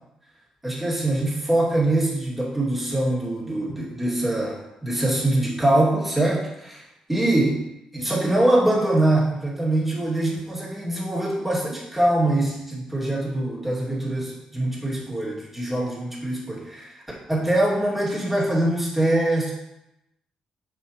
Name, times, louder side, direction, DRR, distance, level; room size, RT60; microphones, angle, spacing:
voice 1, 0.6-6.8 7.1-7.6 7.9-19.5, right 1 dB, 5° right, -6 dB, 2.5 m, -23 dB
7.3 x 5.0 x 3.1 m, 0.89 s
supercardioid pair, 65°, 2 cm